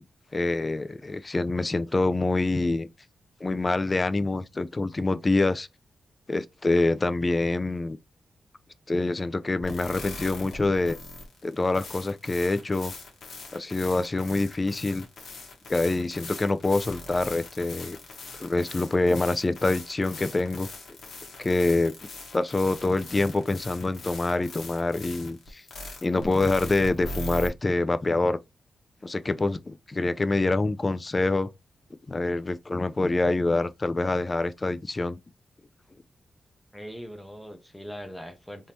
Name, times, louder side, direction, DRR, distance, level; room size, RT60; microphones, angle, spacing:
voice 1, 0.3-2.9 3.4-5.7 6.3-8.0 8.9-11.0 11.4-12.9 13.5-15.1 15.7-18.0 18.3-20.7 21.4-21.9 22.3-25.6 26.0-28.4 29.0-31.5 32.1-35.2, left 2 dB, 25° left, 0.3 m, -26 dB
sound 1, 9.6-27.5, left 2 dB, 75° left, 1.1 m, -41 dB
voice 2, 36.7-38.7, equal, 5° left, 0.7 m, -41 dB
3.5 x 2.6 x 2.9 m
wide cardioid pair, 120°, 0 cm